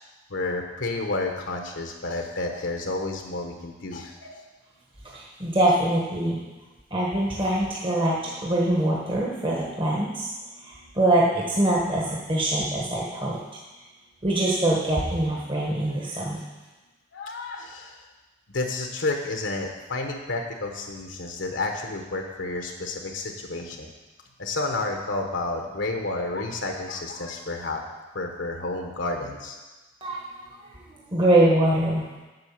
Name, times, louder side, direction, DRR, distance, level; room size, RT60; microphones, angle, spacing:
voice 1, 0.3-4.4 17.1-18.0 18.5-23.9 24.4-27.8 28.1-29.6, left 2 dB, 65° left, 3 dB, 1.0 m, -30 dB
voice 2, 5.0-6.4 6.9-13.4 14.2-16.4 30.0-32.0, right 1 dB, 25° right, -4 dB, 1.2 m, -24 dB
8.0 x 6.3 x 7.2 m, 1.2 s
head